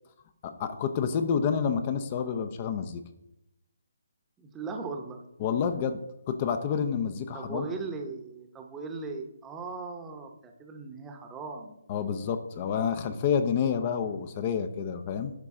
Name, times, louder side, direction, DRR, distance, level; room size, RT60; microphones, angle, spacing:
voice 1, 0.4-3.0 5.4-6.0 6.3-7.7 11.9-15.3, left 7 dB, 30° left, 9 dB, 0.5 m, -29 dB
voice 2, 4.4-5.2 7.3-11.8, right 4 dB, 10° right, 3 dB, 0.8 m, -38 dB
11.0 x 3.9 x 3.7 m, 0.86 s
figure-of-eight pair, 150°, 0 cm